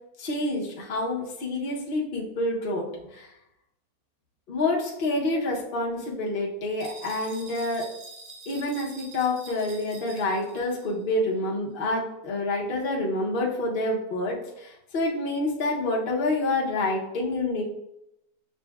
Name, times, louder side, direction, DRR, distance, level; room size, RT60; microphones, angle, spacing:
voice 1, 0.2-2.9 3.1-3.3 4.5-7.9 8.5-17.6, left 2 dB, 50° left, -4 dB, 0.7 m, -28 dB
sound 1, 6.8-10.9, right 3 dB, 55° right, 1.0 m, -46 dB
6.5 x 2.6 x 2.3 m, 0.85 s
omnidirectional pair, 1.7 m